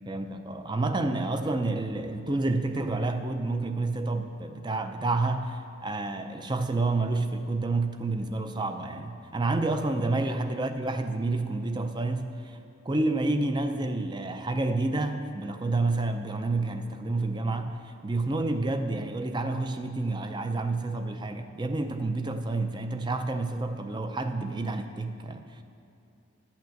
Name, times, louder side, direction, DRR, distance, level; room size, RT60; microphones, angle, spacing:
voice 1, 0.1-12.6 12.8-25.6, right 2 dB, 20° right, 7 dB, 0.5 m, -29 dB
11.0 x 5.9 x 7.6 m, 2.7 s
head